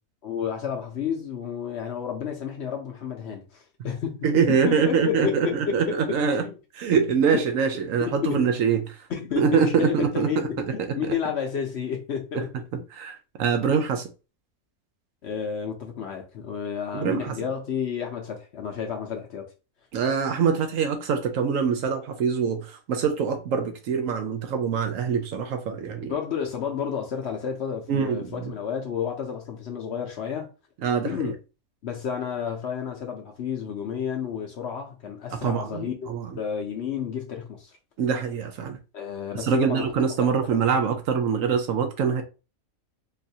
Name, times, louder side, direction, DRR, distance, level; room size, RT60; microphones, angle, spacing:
voice 1, 0.2-4.2 4.7-6.6 8.2-8.4 9.1-12.5 15.2-19.5 25.7-25.8 26.0-30.5 31.0-31.3 31.8-37.7 38.9-39.9, left 7 dB, 60° left, 0.8 m, -31 dB
voice 2, 4.2-6.5 6.7-9.0 9.4-10.9 12.7-14.1 16.9-17.4 19.9-26.1 27.9-28.5 30.8-31.3 35.3-36.4 38.0-38.8 39.4-42.2, right 6 dB, 70° right, 1.0 m, -24 dB
3.9 x 2.5 x 2.7 m
omnidirectional pair, 1.5 m